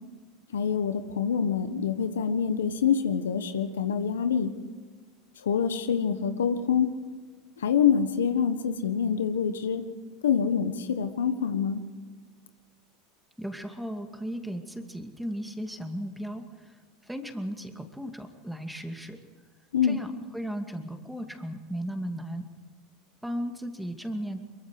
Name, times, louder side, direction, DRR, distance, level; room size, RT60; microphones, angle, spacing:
voice 1, 0.5-4.5 5.4-6.9 7.6-9.8 10.2-11.8 19.7-20.0, left 7 dB, 90° left, 9 dB, 1.4 m, -26 dB
voice 2, 13.4-16.8 17.1-19.2 19.8-22.4 23.2-24.4, equal, 5° right, 5 dB, 2.4 m, -36 dB
23.0 x 23.0 x 4.9 m, 1.5 s
hypercardioid pair, 95°, 0 cm